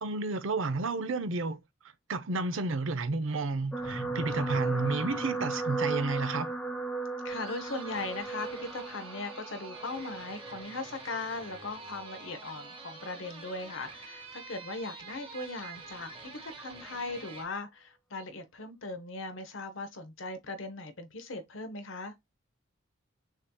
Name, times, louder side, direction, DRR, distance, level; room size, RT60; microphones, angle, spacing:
voice 1, 0.0-1.6 2.1-6.5, right 3 dB, 75° right, 0.7 m, -31 dB
sound 1, 3.7-12.2 12.9-13.2 13.4-13.5, right 3 dB, 5° left, 0.8 m, -36 dB
voice 2, 7.2-22.1, left 3 dB, 70° left, 0.9 m, -39 dB
sound 2, 7.3-17.4, right 4 dB, 30° right, 1.1 m, -47 dB
6.2 x 2.8 x 2.3 m
head